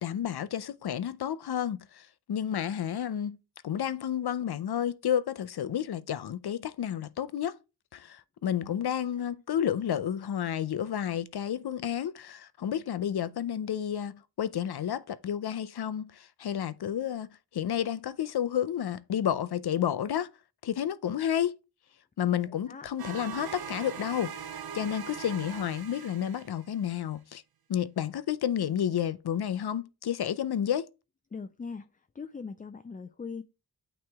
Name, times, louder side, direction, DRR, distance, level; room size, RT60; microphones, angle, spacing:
voice 1, 0.0-3.4 3.6-7.6 7.9-20.3 20.6-21.5 22.2-24.3 24.7-27.4 27.7-30.9, left 9 dB, 75° left, 0.6 m, -31 dB
sound 1, 23.0-26.9, right 8 dB, 65° right, 0.6 m, -41 dB
voice 2, 31.3-31.9 32.2-33.4, left 5 dB, 25° left, 0.3 m, -40 dB
8.8 x 3.1 x 3.4 m
wide cardioid pair, 100°, 39 cm